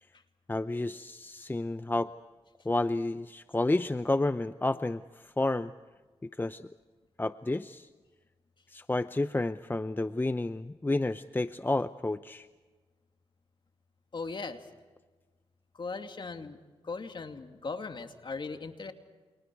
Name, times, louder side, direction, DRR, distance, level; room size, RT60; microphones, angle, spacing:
voice 1, 0.5-2.1 2.6-5.7 6.4-6.7 7.2-7.9 8.7-12.5, left 2 dB, 20° left, 12 dB, 0.7 m, -30 dB
voice 2, 14.1-14.6 15.7-16.6 16.8-18.9, left 4 dB, 50° left, 6 dB, 2.6 m, -38 dB
29.5 x 28.5 x 4.8 m, 1.3 s
cardioid pair, 60°, 11 cm